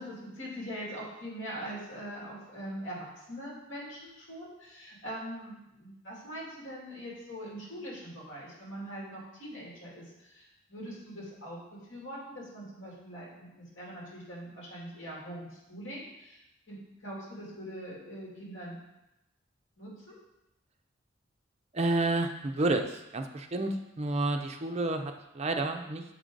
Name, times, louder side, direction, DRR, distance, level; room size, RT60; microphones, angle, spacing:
voice 1, 0.0-16.4 16.7-16.8 17.0-18.8 19.8-20.1, equal, 70° left, -5 dB, 2.6 m, -42 dB
voice 2, 21.7-23.7 24.0-26.0, right 2 dB, 35° right, 5 dB, 0.5 m, -30 dB
7.0 x 4.9 x 3.8 m, 0.90 s
head